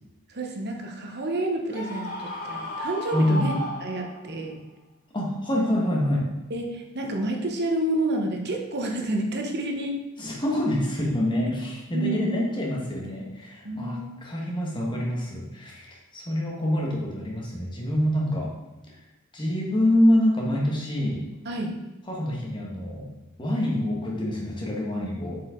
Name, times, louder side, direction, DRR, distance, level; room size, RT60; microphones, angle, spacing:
voice 1, 0.3-3.5 3.8-4.6 6.5-9.9 11.9-12.4 13.6-14.1 21.4-21.7, right 1 dB, 50° right, 2 dB, 1.0 m, -29 dB
Screaming, 1.7-4.4, left 1 dB, 35° left, 1.5 m, -34 dB
voice 2, 3.1-3.5 5.1-6.3 10.2-18.5 19.3-21.3 22.1-23.1 23.4-25.4, left 1 dB, 20° left, -3 dB, 1.5 m, -26 dB
7.4 x 4.9 x 3.8 m, 1.1 s
head